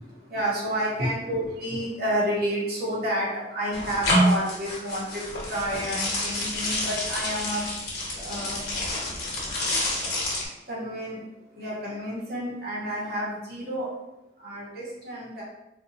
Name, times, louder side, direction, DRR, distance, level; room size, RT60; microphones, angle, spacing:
voice 1, 0.3-3.3 3.5-7.6 8.2-8.6 10.7-11.2 11.6-13.9 14.4-15.4, equal, 50° right, -5 dB, 1.0 m, -30 dB
sound 1, 3.7-10.5, left 1 dB, 55° left, 1.1 m, -28 dB
3.9 x 2.5 x 2.7 m, 0.94 s
head